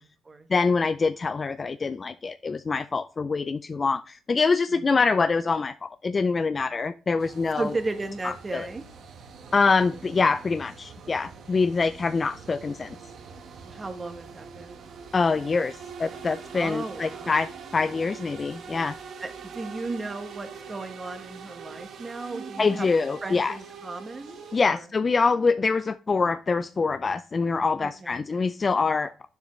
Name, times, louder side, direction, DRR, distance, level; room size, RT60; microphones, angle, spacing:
voice 1, 0.5-7.7 8.2-8.7 9.5-13.0 15.1-19.0 22.6-23.6 24.5-29.1, left 4 dB, 35° left, 11 dB, 0.4 m, -25 dB
sound 1, 7.2-24.6, right 6 dB, 65° right, 1.4 m, -43 dB
voice 2, 7.5-8.8 13.6-14.9 16.5-17.3 19.2-22.9 23.2-24.9 27.8-28.2, right 3 dB, 25° right, 7 dB, 1.3 m, -35 dB
9.7 x 7.0 x 3.1 m, 0.39 s
cardioid pair, 90°, 0 cm